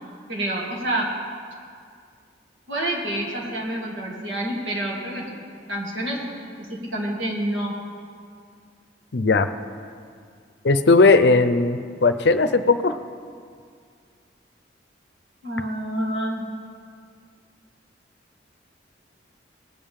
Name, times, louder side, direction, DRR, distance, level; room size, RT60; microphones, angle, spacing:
voice 1, 0.3-1.1 2.7-5.2 5.7-7.7 15.4-16.4, right 1 dB, 85° right, -3 dB, 2.8 m, -28 dB
voice 2, 9.1-9.5 10.6-13.0, left 3 dB, 65° left, 10 dB, 0.6 m, -17 dB
19.5 x 8.8 x 3.7 m, 2.1 s
head